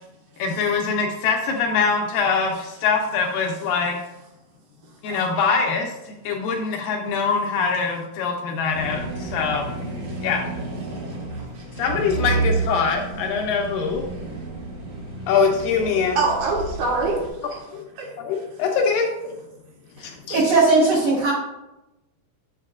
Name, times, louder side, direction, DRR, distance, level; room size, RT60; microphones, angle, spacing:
voice 1, 0.4-4.0 5.0-9.7 10.2-10.4 11.8-14.0 15.3-16.2 17.7-17.9 18.3-19.3 20.0-20.4, left 5 dB, 80° left, 2.1 m, -23 dB
sound 1, 8.7-17.3, right 3 dB, 50° right, 1.5 m, -30 dB
voice 2, 10.0-10.6 10.8-11.9 14.1-14.4 16.1-18.6, right 3 dB, 90° right, 3.3 m, -29 dB
voice 3, 20.0-21.3, right 3 dB, 65° right, 1.7 m, -19 dB
7.4 x 6.7 x 2.4 m
omnidirectional pair, 4.4 m